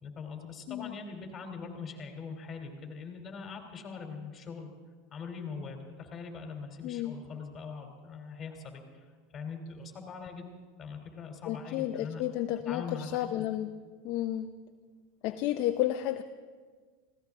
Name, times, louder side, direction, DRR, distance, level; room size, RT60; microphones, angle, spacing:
voice 1, 0.0-4.7 5.1-9.1 9.3-10.5 10.8-12.2 12.6-13.4, left 5 dB, 25° left, 3 dB, 3.0 m, -42 dB
voice 2, 6.8-7.2 11.4-13.7 14.0-14.5 15.2-16.2, left 13 dB, 55° left, 6 dB, 0.6 m, -32 dB
20.5 x 16.5 x 3.6 m, 1.5 s
supercardioid pair, 120°, 0 cm